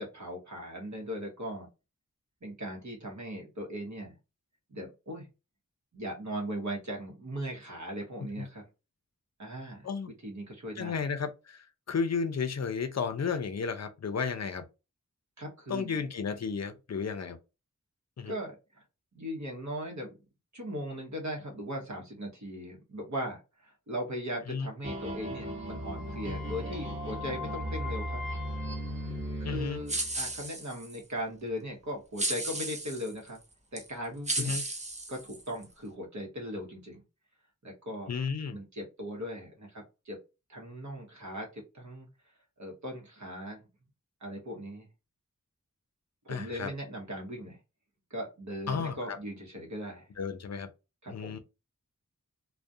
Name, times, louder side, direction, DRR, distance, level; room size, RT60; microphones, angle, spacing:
voice 1, 0.0-1.7 2.4-4.1 4.7-5.3 5.9-8.6 9.4-9.9 10.2-11.0 15.4-16.0 18.3-18.8 19.1-20.2 20.5-28.2 29.4-33.4 33.7-34.6 35.1-37.0 37.6-38.1 38.5-40.2 40.5-42.1 42.6-43.6 44.2-44.9 46.2-47.6 48.1-50.1 51.0-51.4, equal, 60° right, 0.9 m, -39 dB
voice 2, 10.8-14.6 15.7-17.4 18.2-18.3 24.5-24.7 29.4-29.8 34.4-34.6 38.1-38.6 46.3-46.7 48.7-49.2 50.2-50.7 51.1-51.4, left 5 dB, 55° left, 0.5 m, -33 dB
sound 1, 24.8-30.4, equal, 40° right, 1.0 m, -36 dB
sound 2, 29.9-31.0 32.2-33.1 33.8-33.9 34.3-35.6, right 2 dB, 20° right, 0.5 m, -34 dB
2.3 x 2.1 x 2.6 m
wide cardioid pair, 55°, 32 cm